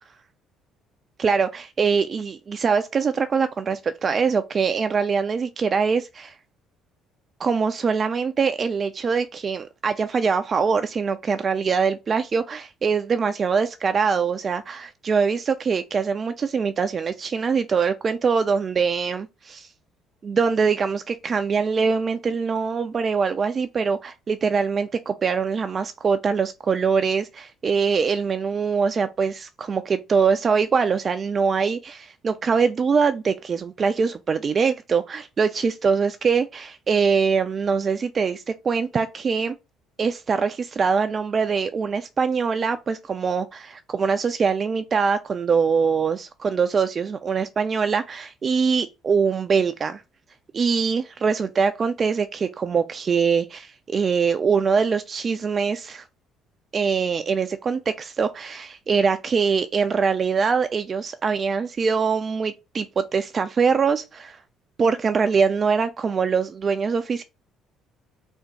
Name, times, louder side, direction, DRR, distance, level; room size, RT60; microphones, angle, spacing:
voice 1, 1.2-6.3 7.4-19.7 20.2-39.5 40.0-50.0 50.5-56.0 56.7-64.4 64.8-67.2, right 5 dB, 40° right, 0.3 m, -23 dB
3.6 x 2.5 x 4.4 m
figure-of-eight pair, 50°, 0 cm